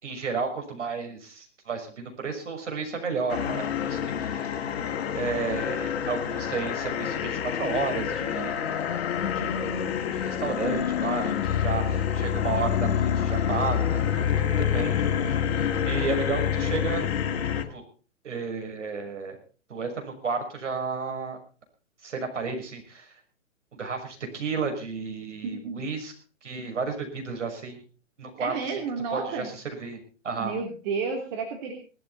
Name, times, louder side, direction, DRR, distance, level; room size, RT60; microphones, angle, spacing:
voice 1, 0.0-4.8 5.1-8.7 9.3-17.3 17.5-17.8 18.2-19.4 19.7-21.4 22.0-23.2 23.7-26.1 26.4-27.8 28.2-28.8 29.1-30.0 30.2-30.5, right 4 dB, 70° right, 4 dB, 6.3 m, -32 dB
sound 1, 3.3-17.6, left 8 dB, 55° left, 2.0 m, -27 dB
voice 2, 25.4-25.8 28.4-29.5 30.4-31.7, right 5 dB, 40° right, 3 dB, 3.1 m, -31 dB
19.5 x 13.0 x 4.2 m, 0.37 s
figure-of-eight pair, 125°, 37 cm